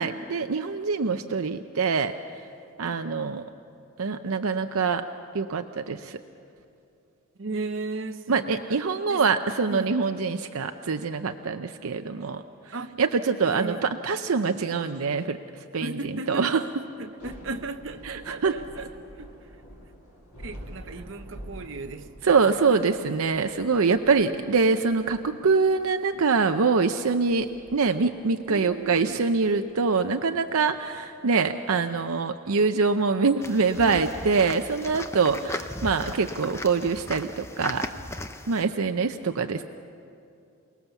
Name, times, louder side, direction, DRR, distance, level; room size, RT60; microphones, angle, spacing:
voice 1, 0.0-2.1 2.8-3.4 4.0-5.0 5.3-6.2 8.3-16.6 18.0-18.6 22.2-27.5 27.7-37.9 38.5-39.6, right 4 dB, 75° right, 0.6 m, -24 dB
voice 2, 7.4-8.8 9.1-9.3 9.7-10.0 12.7-13.0 13.4-13.8 15.8-16.7 17.0-19.5 20.4-22.4 22.7-22.9 28.5-29.2 33.8-34.1 35.3-35.5, right 3 dB, 60° right, 0.9 m, -36 dB
Thunder / Rain, 17.0-30.2, equal, 85° left, 7.4 m, -48 dB
sound 1, 33.4-38.6, left 2 dB, 10° left, 0.6 m, -37 dB
28.5 x 19.0 x 7.1 m
head